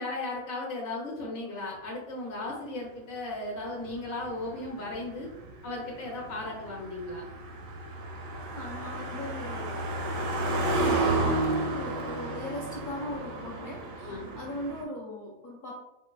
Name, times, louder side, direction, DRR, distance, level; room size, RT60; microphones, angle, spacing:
voice 1, 0.0-5.3 5.6-7.2 14.0-14.3, left 2 dB, 75° left, -3 dB, 1.0 m, -36 dB
Car passing by, 3.7-14.8, right 2 dB, 80° right, 1.0 m, -32 dB
voice 2, 8.3-9.9 10.4-15.8, left 1 dB, 55° left, -6 dB, 0.6 m, -40 dB
4.1 x 2.2 x 2.2 m, 0.89 s
omnidirectional pair, 1.4 m